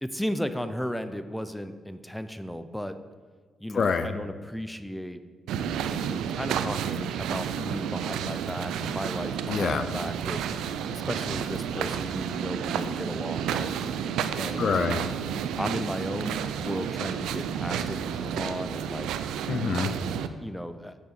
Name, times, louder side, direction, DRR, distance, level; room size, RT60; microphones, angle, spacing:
voice 1, 0.0-3.0 3.6-5.2 5.9-10.4 10.9-13.7 14.4-14.7 15.6-19.1 20.4-21.1, equal, 5° left, 10 dB, 0.5 m, -35 dB
voice 2, 3.7-4.2 9.5-9.8 14.6-15.1 19.5-20.2, left 5 dB, 55° left, 10 dB, 0.4 m, -27 dB
sound 1, 5.5-20.3, right 8 dB, 85° right, 0.3 m, -31 dB
8.1 x 4.5 x 4.4 m, 1.5 s
supercardioid pair, 55°, 0 cm